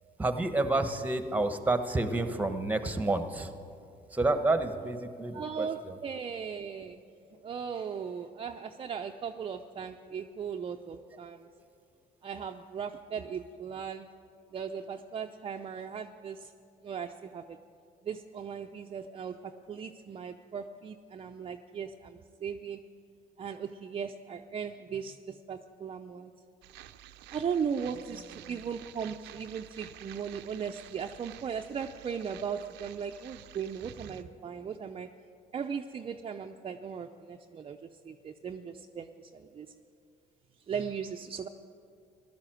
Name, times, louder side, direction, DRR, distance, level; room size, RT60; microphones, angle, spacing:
voice 1, 0.2-3.5 4.1-6.0, right 2 dB, 10° right, 9 dB, 1.1 m, -29 dB
voice 2, 5.3-7.0 7.4-11.5 12.2-14.1 14.5-16.5 16.8-17.6 18.0-22.8 23.4-26.3 27.3-35.1 35.5-39.7 40.7-41.5, right 7 dB, 35° right, 4 dB, 0.6 m, -38 dB
sound 1, 26.6-34.2, right 13 dB, 85° right, 0.6 m, -50 dB
15.5 x 12.0 x 7.7 m, 2.4 s
cardioid pair, 110°, 17 cm